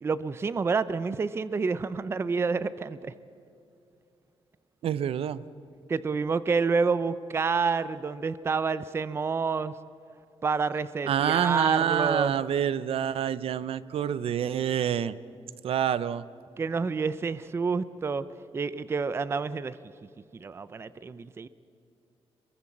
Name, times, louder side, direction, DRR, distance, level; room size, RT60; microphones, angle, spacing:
voice 1, 0.0-3.1 5.9-9.7 10.4-12.3 16.6-18.3 18.5-19.8 20.4-21.5, right 4 dB, 25° right, 15 dB, 0.5 m, -28 dB
voice 2, 4.8-5.4 11.1-15.2 15.6-16.2, right 9 dB, 65° right, 16 dB, 0.7 m, -27 dB
26.5 x 22.5 x 7.3 m, 2.6 s
wide cardioid pair, 165°, 11 cm